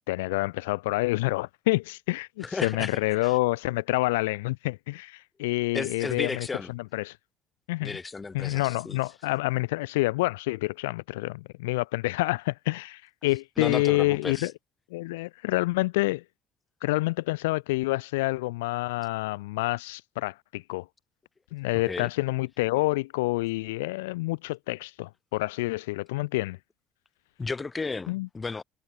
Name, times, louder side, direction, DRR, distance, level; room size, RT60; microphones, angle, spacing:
voice 1, 0.1-6.5 6.7-7.2 7.7-8.0 8.3-14.5 14.9-16.2 16.8-20.9 21.5-26.6 28.1-28.3, left 21 dB, 85° left, 1.3 m, -28 dB
voice 2, 2.4-3.4 5.7-6.7 7.8-9.0 13.6-14.5 21.9-22.1 27.4-28.6, left 4 dB, 25° left, 5.2 m, -33 dB
hypercardioid pair, 60°, 0 cm